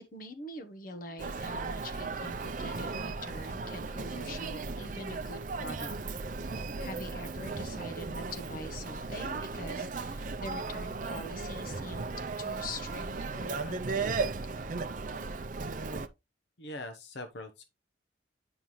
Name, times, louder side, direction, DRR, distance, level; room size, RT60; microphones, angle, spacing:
voice 1, 0.0-5.9 6.8-12.1 12.4-14.3, left 1 dB, 50° left, 1.1 m, -44 dB
Human voice, 1.2-16.1, right 4 dB, 45° right, 0.5 m, -36 dB
voice 2, 16.6-17.6, left 2 dB, 65° left, 0.8 m, -42 dB
9.1 x 5.4 x 3.1 m
head